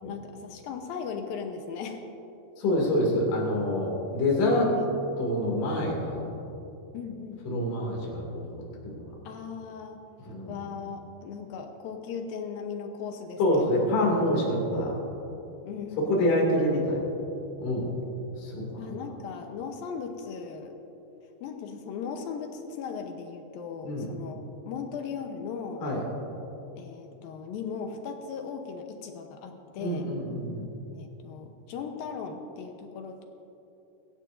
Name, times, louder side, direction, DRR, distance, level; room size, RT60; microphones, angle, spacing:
voice 1, 0.0-2.0 4.8-4.9 6.9-7.7 9.2-10.0 10.5-13.9 15.7-16.4 18.8-20.8 21.4-25.8 26.8-30.1 30.9-33.2, left 6 dB, 75° left, 4 dB, 2.5 m, -38 dB
voice 2, 2.6-4.7 5.2-6.3 7.5-8.5 8.8-9.0 10.3-10.5 13.4-14.9 16.0-17.0 17.6-17.9 18.4-18.8 23.8-24.1 25.8-26.0 29.8-30.7, left 1 dB, 55° left, -2 dB, 3.9 m, -26 dB
24.5 x 13.0 x 2.6 m, 2.9 s
omnidirectional pair, 4.6 m